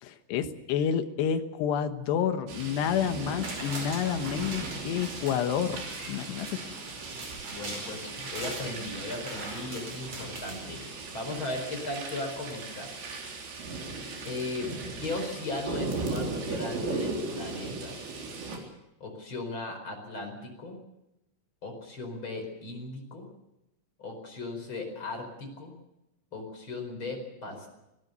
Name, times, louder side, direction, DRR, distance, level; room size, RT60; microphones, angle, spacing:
voice 1, 0.0-6.5, left 8 dB, 70° left, 8 dB, 3.2 m, -29 dB
sound 1, 2.5-18.6, right 3 dB, 70° right, 6.0 m, -37 dB
sound 2, 3.1-11.2 11.6-11.7, right 2 dB, 35° right, 5.7 m, -42 dB
voice 2, 7.5-10.8 11.1-12.9 14.2-14.7 15.0-17.9 19.0-20.8 21.6-23.3 24.0-25.7 26.3-27.7, left 2 dB, 25° left, 4 dB, 5.0 m, -37 dB
25.0 x 18.0 x 6.8 m, 0.92 s
omnidirectional pair, 5.3 m